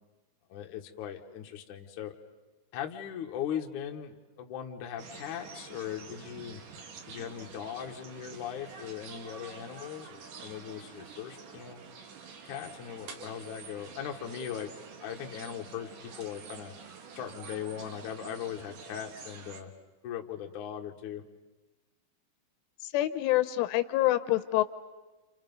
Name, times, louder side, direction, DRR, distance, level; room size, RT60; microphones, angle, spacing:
voice 1, 0.5-2.1 2.7-6.6 7.1-11.8 12.4-16.7 17.1-19.7 20.0-21.2, left 9 dB, 65° left, 2 dB, 2.0 m, -39 dB
sound 1, 5.0-19.6, right 6 dB, 60° right, 2.6 m, -48 dB
voice 2, 22.9-24.6, left 16 dB, 85° left, 11 dB, 3.4 m, -26 dB
30.0 x 28.5 x 5.4 m, 1.2 s
omnidirectional pair, 5.6 m